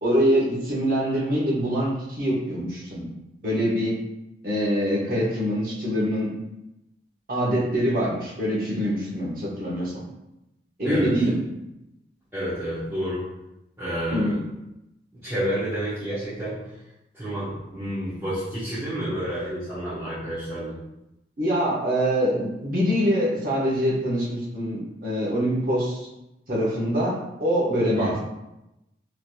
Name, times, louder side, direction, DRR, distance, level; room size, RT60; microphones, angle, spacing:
voice 1, 0.0-3.1 3.4-3.9 4.4-6.3 7.3-10.0 10.8-11.4 14.1-14.4 21.4-26.1 26.5-28.2, equal, 50° right, -6 dB, 1.0 m, -24 dB
voice 2, 10.8-11.2 12.3-13.3 13.8-14.4 15.2-16.7 17.1-20.8 27.9-28.2, equal, 15° right, -16 dB, 1.0 m, -29 dB
3.4 x 3.0 x 2.2 m, 0.91 s
head